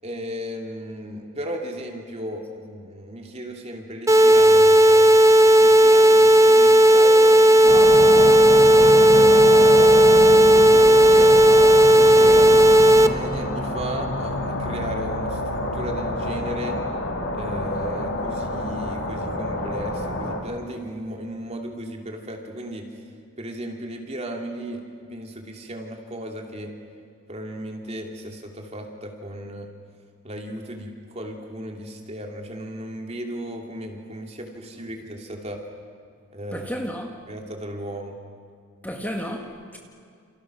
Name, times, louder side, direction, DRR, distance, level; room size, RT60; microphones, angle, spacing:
voice 1, 0.0-5.1 5.6-8.3 8.7-11.5 11.9-16.8 17.3-22.9 23.4-24.8 25.1-26.7 27.3-29.7 30.2-35.6 36.3-36.7 37.3-38.2, right 1 dB, 30° right, 2 dB, 3.0 m, -35 dB
sound 1, 4.1-13.1, right 1 dB, 15° right, 0.7 m, -13 dB
sound 2, 7.6-20.4, left 1 dB, 60° left, 4.0 m, -28 dB
voice 2, 36.5-37.2 38.8-39.8, equal, 10° left, 1 dB, 1.8 m, -32 dB
29.5 x 29.0 x 6.2 m, 2.3 s
head